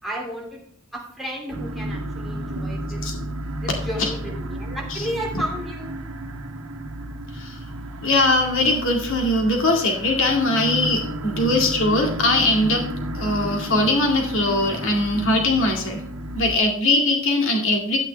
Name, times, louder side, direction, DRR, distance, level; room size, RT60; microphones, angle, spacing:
voice 1, 0.0-0.6 0.9-3.0 3.6-5.9, equal, ahead, -2 dB, 2.8 m, -32 dB
sound 1, 1.5-16.6, right 1 dB, 80° right, 1.2 m, -32 dB
voice 2, 8.0-12.8 13.1-16.0 16.3-18.0, left 2 dB, 65° left, 1 dB, 2.1 m, -21 dB
11.5 x 9.1 x 3.4 m, 0.67 s
head